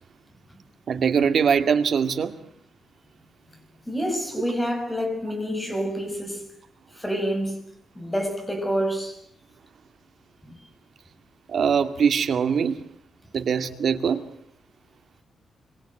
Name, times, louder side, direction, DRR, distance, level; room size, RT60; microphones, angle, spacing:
voice 1, 0.9-2.3 11.5-12.8 13.3-14.2, right 7 dB, 50° right, 2.2 m, -22 dB
voice 2, 3.9-6.5 6.9-7.6 7.9-9.2 10.4-10.6, equal, 10° left, 6.8 m, -28 dB
25.5 x 24.5 x 7.9 m
wide cardioid pair, 150°, 0 cm